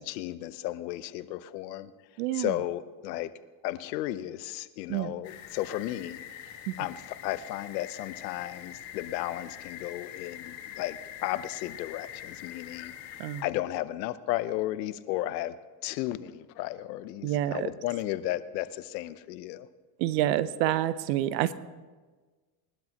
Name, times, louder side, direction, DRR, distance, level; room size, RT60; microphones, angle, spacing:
voice 1, 0.0-1.9 2.3-3.3 3.6-12.9 13.4-15.6 15.8-19.7, left 15 dB, 90° left, 14 dB, 0.9 m, -34 dB
voice 2, 2.2-2.5 4.9-5.1 6.7-6.8 13.2-13.4 17.2-17.7 20.0-21.5, right 13 dB, 80° right, 15 dB, 0.9 m, -28 dB
sound 1, 5.2-13.4, left 10 dB, 65° left, 2.0 m, -44 dB
21.5 x 12.0 x 2.9 m, 1.3 s
supercardioid pair, 100°, 49 cm